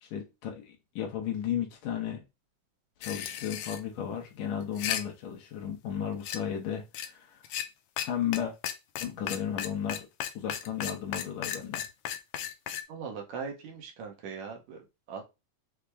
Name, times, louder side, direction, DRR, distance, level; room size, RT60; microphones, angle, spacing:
voice 1, 0.0-2.2 3.0-7.5 8.0-8.5 9.0-10.1 10.4-11.8, left 9 dB, 75° left, 2.0 m, -34 dB
sound 1, 3.0-3.8 4.6-5.0 6.2-6.4 6.9-7.1 7.4-7.7 8.0-8.1 8.3-8.4 8.6-12.8, left 10 dB, 90° left, 1.3 m, -34 dB
voice 2, 12.9-14.8 15.1-15.2, right 5 dB, 75° right, 2.1 m, -40 dB
5.9 x 2.1 x 3.3 m
omnidirectional pair, 3.4 m